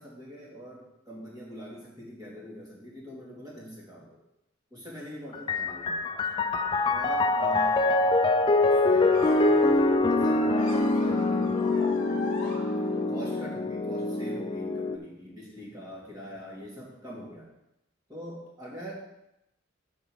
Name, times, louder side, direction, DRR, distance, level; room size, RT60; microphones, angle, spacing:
voice 1, 0.0-4.2 4.7-6.3 6.9-8.0 8.7-12.6 12.9-17.5 18.1-18.9, equal, 20° right, -5 dB, 2.5 m, -43 dB
Piano, 5.3-14.9, left 2 dB, 25° left, 0.4 m, -24 dB
sound 1, 9.1-13.3, left 1 dB, 40° left, 1.6 m, -41 dB
6.5 x 5.4 x 6.4 m, 0.87 s
head